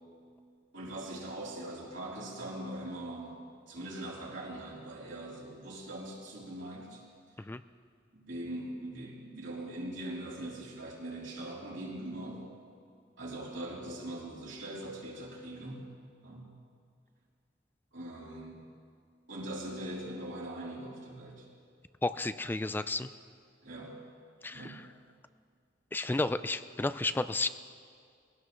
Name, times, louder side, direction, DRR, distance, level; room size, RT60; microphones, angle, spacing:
voice 1, 0.7-3.4 3.7-7.0 8.1-12.4 13.2-15.9 16.2-16.5 17.9-18.6 19.3-21.5 23.6-24.0 24.5-24.8, right 1 dB, 75° right, -5 dB, 3.6 m, -41 dB
voice 2, 22.0-23.1 24.4-24.8 25.9-27.5, left 2 dB, 10° left, 12 dB, 0.3 m, -32 dB
21.5 x 17.0 x 3.2 m, 2.2 s
head